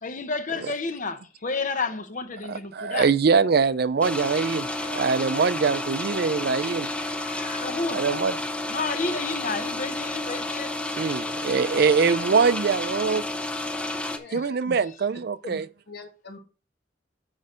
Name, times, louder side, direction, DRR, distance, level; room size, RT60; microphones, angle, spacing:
voice 1, 0.0-3.1 4.8-5.2 7.0-8.0 8.7-10.8, left 4 dB, 45° left, 0.8 m, -31 dB
voice 2, 2.5-6.9 7.9-8.3 11.0-13.2 14.3-15.7, right 5 dB, 60° right, 0.5 m, -23 dB
sound 1, 4.0-14.2, left 2 dB, 5° left, 0.6 m, -31 dB
voice 3, 15.9-16.4, left 4 dB, 60° left, 1.7 m, -42 dB
6.4 x 5.3 x 5.0 m
head